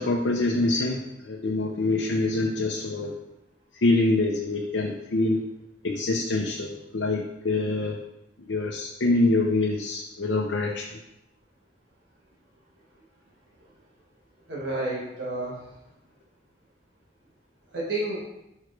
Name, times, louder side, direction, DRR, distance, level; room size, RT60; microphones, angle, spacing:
voice 1, 0.0-3.2 3.8-5.5 5.8-8.0 8.4-10.9, left 2 dB, 90° left, 0 dB, 0.7 m, -25 dB
voice 2, 14.5-15.6 17.7-18.2, right 2 dB, 80° right, -5 dB, 1.5 m, -30 dB
5.6 x 4.8 x 4.6 m, 0.88 s
head